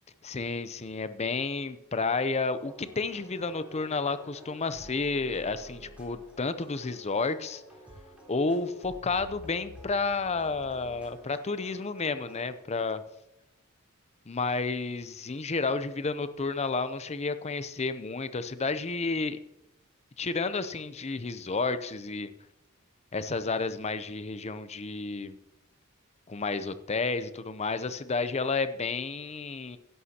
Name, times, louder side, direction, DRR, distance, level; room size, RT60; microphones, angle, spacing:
voice 1, 0.2-7.6 8.3-13.0 14.3-19.4 20.2-22.3 23.1-25.4 26.3-29.8, left 4 dB, 30° left, 12 dB, 0.6 m, -31 dB
sound 1, 2.6-12.6, equal, 5° right, 3.6 m, -50 dB
16.0 x 11.0 x 2.9 m, 0.92 s
head